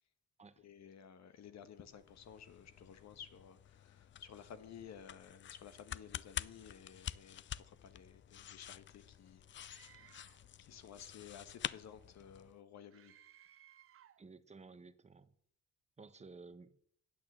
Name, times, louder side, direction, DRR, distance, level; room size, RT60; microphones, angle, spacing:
voice 1, 0.6-10.3 10.6-13.2, left 8 dB, 65° left, 11 dB, 1.3 m, -55 dB
sound 1, 1.8-12.6, left 10 dB, 40° left, 0.4 m, -48 dB
Screaming, 9.6-10.5 12.9-14.3, right 11 dB, 45° right, 0.6 m, -62 dB
voice 2, 14.2-15.3 16.0-16.7, right 4 dB, 20° right, 11 dB, 0.9 m, -55 dB
8.9 x 8.5 x 7.5 m, 0.69 s
cardioid pair, 90°, 30 cm